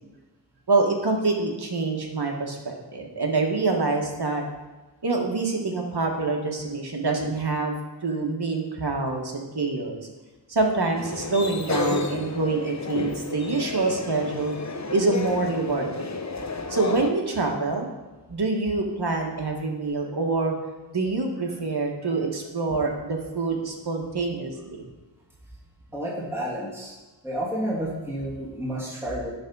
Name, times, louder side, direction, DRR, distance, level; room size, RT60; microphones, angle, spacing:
voice 1, 0.7-4.4 5.0-7.8 8.0-10.0 10.5-14.5 14.9-16.1 16.7-17.9 18.3-20.5 20.9-24.8, right 3 dB, 60° right, 1 dB, 1.5 m, -26 dB
sound 1, 11.0-17.1, left 3 dB, 40° left, 0.8 m, -31 dB
voice 2, 25.9-26.9 27.2-29.3, equal, 5° right, -6 dB, 2.2 m, -30 dB
10.5 x 3.6 x 5.4 m, 1.2 s
wide cardioid pair, 40°, 44 cm